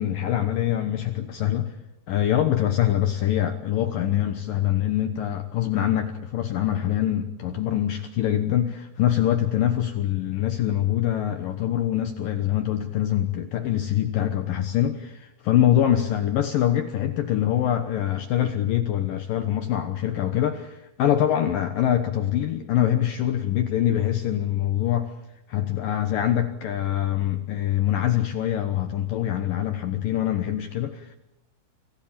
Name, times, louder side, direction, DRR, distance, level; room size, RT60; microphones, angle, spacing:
voice 1, 0.0-1.7 2.1-25.1 25.5-31.2, left 11 dB, 80° left, 7 dB, 2.0 m, -24 dB
26.5 x 17.0 x 8.8 m, 0.94 s
omnidirectional pair, 5.6 m